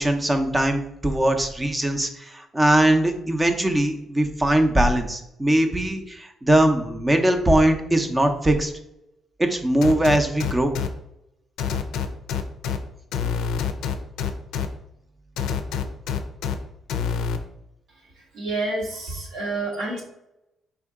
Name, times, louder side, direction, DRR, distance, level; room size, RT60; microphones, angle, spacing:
voice 1, 0.0-8.7 9.4-10.8, right 1 dB, 20° right, 6 dB, 0.6 m, -21 dB
sound 1, 9.8-10.9 11.6-12.8 13.1-14.7 15.4-16.5 16.9-17.4, left 7 dB, 90° left, 0.4 m, -26 dB
voice 2, 18.3-20.0, right 2 dB, 75° right, -1 dB, 1.5 m, -28 dB
4.5 x 2.7 x 3.5 m, 0.84 s
cardioid pair, 90°, 0 cm